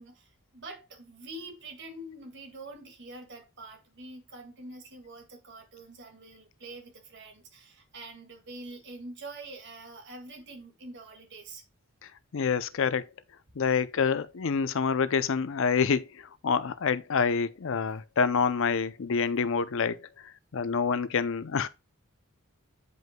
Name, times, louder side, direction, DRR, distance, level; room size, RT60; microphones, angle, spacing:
voice 1, 0.0-11.6, right 2 dB, 55° right, 1.9 m, -45 dB
voice 2, 12.3-13.1 13.6-21.7, left 5 dB, 60° left, 0.5 m, -27 dB
9.3 x 5.3 x 2.2 m
head